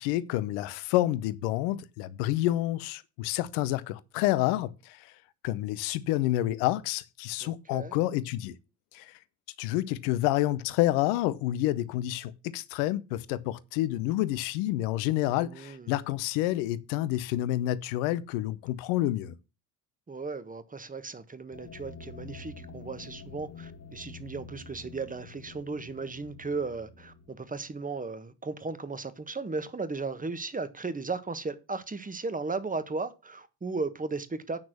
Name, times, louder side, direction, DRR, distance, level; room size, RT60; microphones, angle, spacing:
voice 1, 0.0-5.1 5.4-8.5 8.9-9.1 9.6-19.4, left 15 dB, 70° left, 0.9 m, -29 dB
voice 2, 7.4-7.9 15.4-15.9 20.1-34.6, right 3 dB, 15° right, 1.4 m, -36 dB
sound 1, 21.5-28.0, left 4 dB, 30° left, 2.0 m, -47 dB
9.0 x 6.1 x 6.2 m
hypercardioid pair, 50°, 48 cm